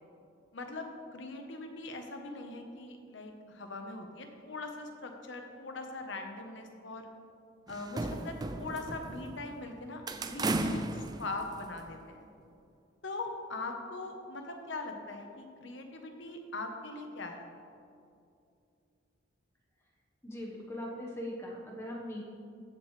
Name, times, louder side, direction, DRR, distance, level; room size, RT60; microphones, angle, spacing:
voice 1, 0.5-7.1 7.7-10.0 10.3-12.3 13.0-17.5, left 2 dB, 65° left, 4 dB, 1.0 m, -41 dB
sound 1, 7.7-9.6 10.1-12.0, right 2 dB, 20° right, 0.3 m, -35 dB
voice 2, 20.2-22.2, equal, 15° left, -2 dB, 1.2 m, -40 dB
14.0 x 7.4 x 3.2 m, 2.5 s
head